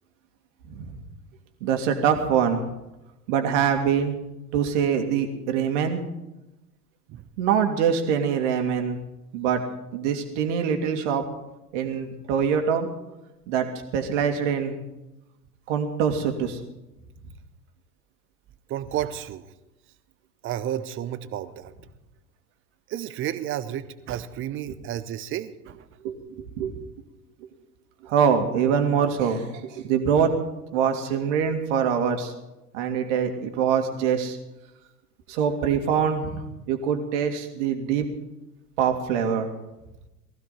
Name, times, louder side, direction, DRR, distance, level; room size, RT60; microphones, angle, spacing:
voice 1, 1.6-2.6 3.3-4.2 4.5-6.0 7.4-9.0 9.3-9.6 9.9-11.2 11.7-12.9 13.5-13.7 13.9-14.8 15.7-16.6 26.0-26.7 28.0-29.4 29.7-30.3 30.7-32.3 32.7-34.4 35.3-38.0 38.8-39.5, right 7 dB, 50° right, 5 dB, 2.4 m, -24 dB
voice 2, 18.7-19.5 20.4-21.7 22.9-25.8, right 11 dB, 25° right, 14 dB, 0.8 m, -31 dB
20.0 x 15.0 x 4.2 m, 0.96 s
figure-of-eight pair, 90°, 46 cm